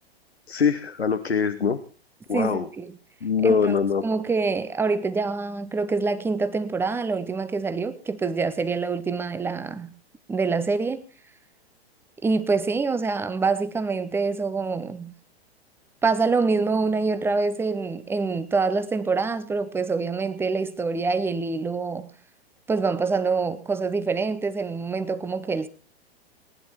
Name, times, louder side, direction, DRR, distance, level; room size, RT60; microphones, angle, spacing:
voice 1, 0.5-1.8 2.3-2.7 3.2-4.0, left 6 dB, 80° left, 1.0 m, -23 dB
voice 2, 2.3-2.9 3.4-3.8 4.0-9.9 10.3-11.0 12.2-15.1 16.0-22.1 22.7-25.7, right 4 dB, 5° right, 0.8 m, -25 dB
19.0 x 10.5 x 4.3 m
figure-of-eight pair, 105°, 31 cm